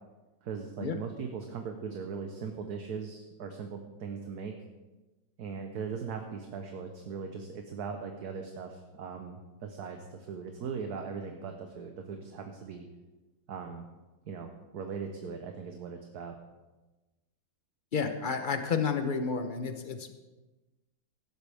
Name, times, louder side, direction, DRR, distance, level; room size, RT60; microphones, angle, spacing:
voice 1, 0.4-4.5 5.4-12.9 13.5-13.9 14.3-16.4, right 5 dB, 60° right, 4 dB, 1.4 m, -39 dB
voice 2, 17.9-20.1, left 5 dB, 55° left, 7 dB, 0.5 m, -31 dB
16.0 x 13.0 x 3.5 m, 1.1 s
omnidirectional pair, 2.1 m